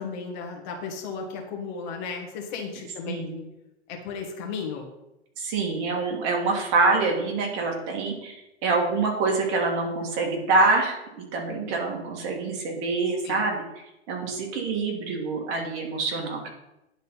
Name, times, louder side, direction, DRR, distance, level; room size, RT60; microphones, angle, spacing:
voice 1, 0.0-3.4 3.9-4.9 13.2-13.4, left 5 dB, 40° left, 2 dB, 1.6 m, -35 dB
voice 2, 3.1-3.4 5.4-13.6 14.1-16.5, right 3 dB, 35° right, 1 dB, 2.0 m, -26 dB
10.0 x 4.1 x 5.6 m, 0.90 s
hypercardioid pair, 125°, 35 cm